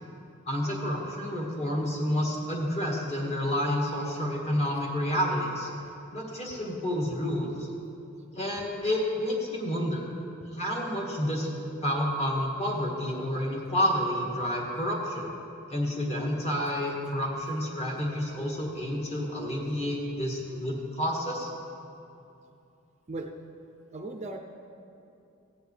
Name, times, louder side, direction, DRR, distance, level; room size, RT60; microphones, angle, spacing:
voice 1, 0.5-5.7 6.1-7.7 8.3-10.0 10.5-11.5 11.8-15.3 15.7-21.5, equal, 30° left, -2 dB, 1.8 m, -29 dB
voice 2, 23.9-24.4, right 2 dB, 35° right, 3 dB, 0.5 m, -36 dB
16.5 x 8.1 x 3.3 m, 2.7 s
head